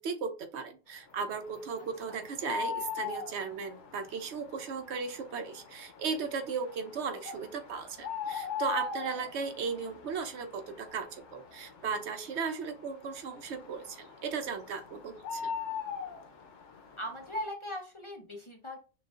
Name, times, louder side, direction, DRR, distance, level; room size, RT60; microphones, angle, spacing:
voice 1, 0.0-15.5, right 5 dB, 75° right, 8 dB, 0.9 m, -36 dB
sound 1, 1.1-17.4, left 6 dB, 85° left, 1.0 m, -42 dB
voice 2, 17.0-18.8, left 1 dB, 35° left, 1 dB, 0.6 m, -39 dB
6.0 x 2.4 x 2.4 m, 0.33 s
omnidirectional pair, 1.2 m